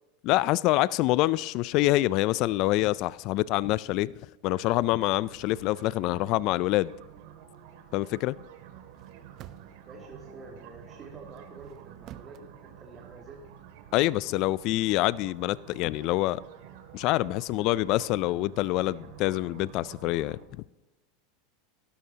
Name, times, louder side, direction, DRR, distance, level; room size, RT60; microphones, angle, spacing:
voice 1, 0.2-4.1 4.4-6.9 7.9-8.4 13.9-16.4 16.9-20.6, left 17 dB, 55° left, 0.3 m, -26 dB
sound 1, 4.4-20.4, right 9 dB, 70° right, 2.2 m, -50 dB
sound 2, 5.5-6.0 8.8-9.9 11.3-12.4, right 12 dB, 45° right, 0.7 m, -50 dB
voice 2, 9.8-13.4, right 3 dB, 30° right, 2.5 m, -48 dB
18.0 x 12.5 x 2.8 m
supercardioid pair, 115°, 0 cm